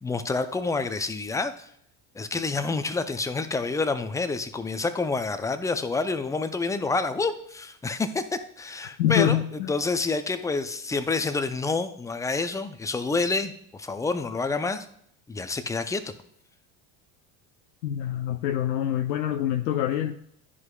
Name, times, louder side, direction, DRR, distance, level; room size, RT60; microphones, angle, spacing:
voice 1, 0.0-1.7 2.2-13.5 13.8-14.9 15.3-16.1, left 3 dB, 5° left, 9 dB, 0.4 m, -28 dB
voice 2, 9.0-9.7 17.8-20.1, left 11 dB, 85° left, 4 dB, 0.6 m, -25 dB
11.0 x 4.9 x 2.2 m, 0.70 s
hypercardioid pair, 70°, 49 cm